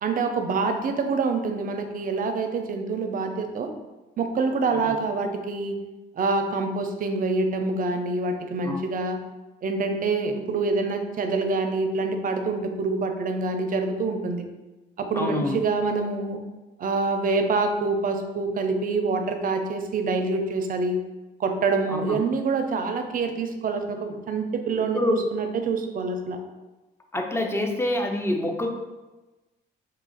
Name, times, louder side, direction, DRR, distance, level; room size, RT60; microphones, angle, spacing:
voice 1, 0.0-3.7 4.2-5.8 6.2-9.2 9.6-14.5 15.0-16.4 16.8-21.0 21.4-26.4, right 3 dB, 45° right, 6 dB, 0.4 m, -26 dB
voice 2, 15.1-15.6 21.9-22.2 24.9-25.3 27.1-28.7, left 1 dB, 10° left, 3 dB, 0.4 m, -26 dB
2.8 x 2.4 x 3.8 m, 1.1 s
cardioid pair, 90°, 20 cm